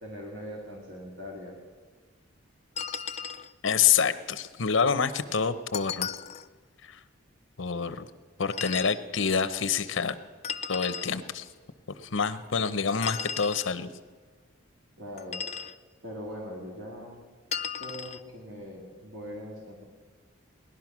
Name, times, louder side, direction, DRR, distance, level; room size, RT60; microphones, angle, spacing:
voice 1, 0.0-1.6 15.0-15.4 16.0-17.2 17.8-19.8, equal, 70° right, -2 dB, 2.4 m, -41 dB
sound 1, 2.8-3.5 5.7-6.5 8.5-9.0 10.4-11.1 13.0-13.7 15.2-15.8 17.5-18.2, left 7 dB, 35° left, 0.4 m, -35 dB
voice 2, 3.6-6.1 6.8-7.0 7.6-8.1 8.4-10.2 10.7-11.5 12.0-13.9, left 6 dB, 75° left, 12 dB, 0.8 m, -27 dB
18.5 x 11.5 x 6.1 m, 1.5 s
head